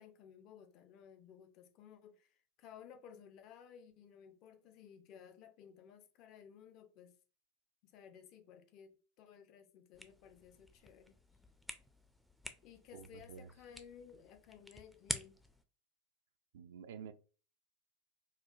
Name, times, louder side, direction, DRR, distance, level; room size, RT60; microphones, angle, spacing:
voice 1, 0.0-7.2 7.8-11.2 12.6-15.4, left 8 dB, 45° left, 0.6 m, -57 dB
sound 1, 9.9-15.6, equal, ahead, 0.4 m, -48 dB
voice 2, 12.9-13.5 16.5-17.1, right 7 dB, 65° right, 0.3 m, -50 dB
4.3 x 2.3 x 2.3 m
figure-of-eight pair, 85°, 0 cm